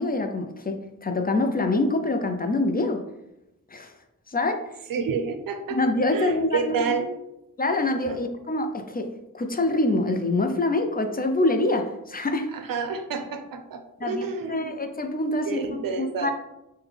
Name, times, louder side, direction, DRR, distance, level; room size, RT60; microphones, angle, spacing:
voice 1, 0.0-3.0 3.7-3.9 4.3-4.6 5.7-6.9 7.6-12.5 14.0-16.3, left 2 dB, 25° left, 5 dB, 0.4 m, -25 dB
voice 2, 4.9-5.8 6.1-7.2 8.1-8.2 12.5-14.7 15.4-16.3, right 5 dB, 80° right, 7 dB, 0.5 m, -29 dB
3.4 x 2.2 x 3.4 m, 0.88 s
cardioid pair, 45°, 34 cm